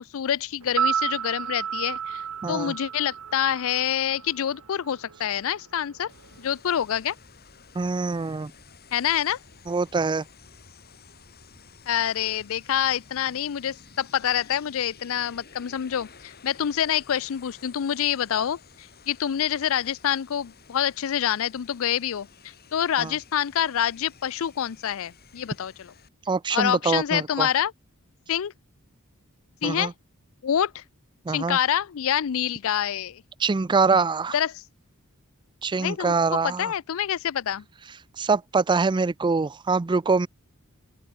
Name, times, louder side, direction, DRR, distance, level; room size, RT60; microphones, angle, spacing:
voice 1, 0.0-6.1 6.4-7.2 8.9-9.4 11.9-22.3 22.7-25.9 26.5-27.7 28.3-28.5 29.6-29.9 30.4-30.8 31.3-33.2 34.3-34.6 35.8-36.1 36.4-37.6, left 9 dB, 70° left, 0.4 m, -26 dB
sound 1, 0.6-4.8 5.1-5.2, right 8 dB, 85° right, 0.8 m, -31 dB
voice 2, 2.4-2.7 7.8-8.5 9.7-10.2 23.0-23.1 26.3-27.5 29.6-29.9 31.3-31.6 33.4-34.3 35.6-36.7 38.2-40.3, right 4 dB, 20° right, 0.4 m, -24 dB
sound 2, 6.1-26.1, left 5 dB, 45° left, 3.2 m, -52 dB
open air
head